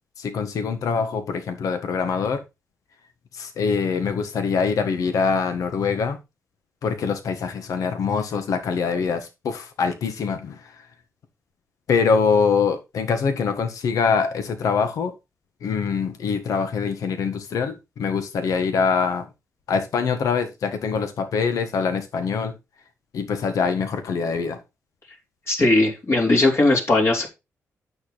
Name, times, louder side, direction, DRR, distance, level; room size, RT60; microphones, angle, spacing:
voice 1, 0.2-2.4 3.3-6.2 6.8-10.6 11.9-15.1 15.6-19.3 19.7-22.5 23.1-24.6, left 5 dB, 75° left, 1.5 m, -24 dB
voice 2, 25.5-27.3, left 2 dB, 50° left, 3.4 m, -18 dB
9.6 x 7.0 x 4.0 m
cardioid pair, 85°, 6 cm